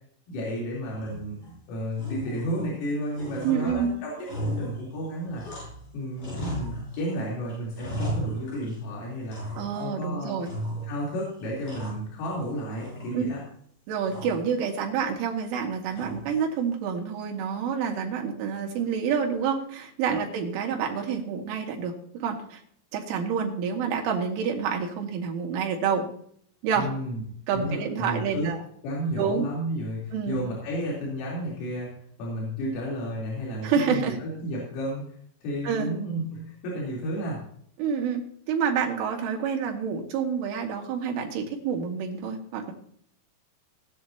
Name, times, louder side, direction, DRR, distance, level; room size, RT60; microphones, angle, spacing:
voice 1, 0.3-1.4 1.7-5.6 5.9-10.3 10.8-13.4 26.7-27.2 27.5-28.5 28.8-31.9 32.2-35.0 35.4-37.4, equal, 90° left, -5 dB, 6.4 m, -32 dB
sound 1, 1.0-1.6 1.9-2.9 3.1-5.9 6.2-7.2 7.5-8.9 9.3-10.0 10.4-11.1 11.4-12.5 12.8-13.5 14.1-14.5 15.9-16.4, right 1 dB, 40° left, 7.6 m, -36 dB
voice 2, 3.4-3.9 9.6-10.5 13.1-13.2 13.9-22.0 22.2-22.6 22.9-26.1 26.6-26.9 27.5-28.6 29.2-29.5 30.1-30.4 33.6-34.2 35.6-35.9 37.8-42.7, right 6 dB, 75° right, 1 dB, 4.5 m, -28 dB
19.0 x 10.0 x 2.9 m, 0.63 s
omnidirectional pair, 5.7 m